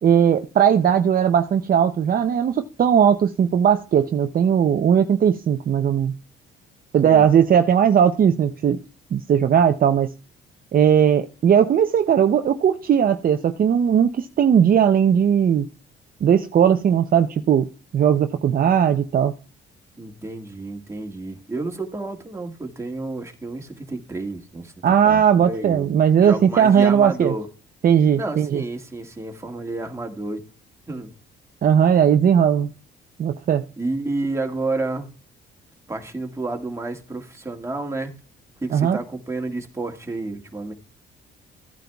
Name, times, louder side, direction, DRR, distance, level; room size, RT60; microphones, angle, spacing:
voice 1, 0.0-6.1 6.9-8.8 9.1-10.1 10.7-15.7 16.2-17.7 17.9-19.3 24.8-27.3 27.8-28.6 31.6-32.7 33.2-33.6 38.7-39.0, right 8 dB, 45° right, 0.6 m, -18 dB
voice 2, 20.0-24.7 25.0-25.9 26.2-27.5 28.1-30.4 30.9-31.1 33.8-35.1 35.9-38.1 38.6-40.7, right 2 dB, 15° right, 1.8 m, -30 dB
14.5 x 9.1 x 2.3 m
supercardioid pair, 75°, 21 cm